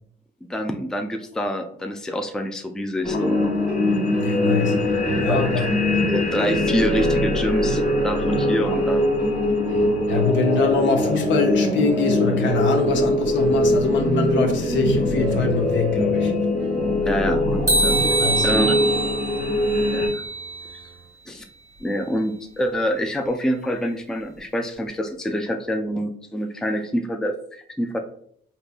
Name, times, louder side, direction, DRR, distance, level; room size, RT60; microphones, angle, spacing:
voice 1, 0.5-3.4 5.2-5.6 6.1-9.2 17.1-18.0 18.4-18.8 19.8-20.2 21.3-21.4 21.8-28.0, equal, 5° left, 0.3 m, -26 dB
sound 1, 3.0-20.1, left 1 dB, 35° left, 1.2 m, -22 dB
sound 2, 3.1-21.1, right 9 dB, 65° right, 0.5 m, -38 dB
voice 2, 4.2-4.9 5.2-5.7 10.1-16.3 18.2-18.5, left 4 dB, 70° left, 0.6 m, -23 dB
sound 3, 17.7-20.8, right 2 dB, 15° right, 0.7 m, -24 dB
3.7 x 2.7 x 2.3 m
cardioid pair, 90°, 20 cm